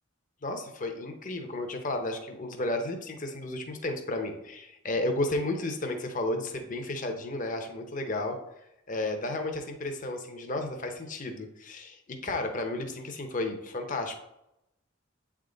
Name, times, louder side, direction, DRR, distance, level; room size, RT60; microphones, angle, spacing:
voice 1, 0.4-8.4 8.9-14.2, left 2 dB, 40° left, 4 dB, 0.8 m, -33 dB
8.1 x 3.6 x 3.9 m, 0.85 s
head